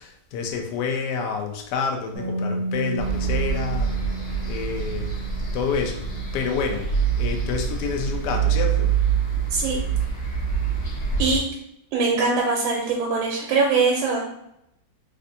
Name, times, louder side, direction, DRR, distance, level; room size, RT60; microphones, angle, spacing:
voice 1, 0.0-4.0 4.5-6.1 6.3-8.9, left 5 dB, 75° left, 3 dB, 0.9 m, -28 dB
Bass guitar, 2.2-8.4, right 3 dB, 65° right, 1.0 m, -34 dB
sound 1, 3.0-11.4, right 7 dB, 55° left, 1.2 m, -25 dB
voice 2, 11.9-14.2, right 4 dB, 90° right, -2 dB, 1.4 m, -22 dB
3.4 x 2.5 x 2.6 m, 0.80 s
omnidirectional pair, 2.2 m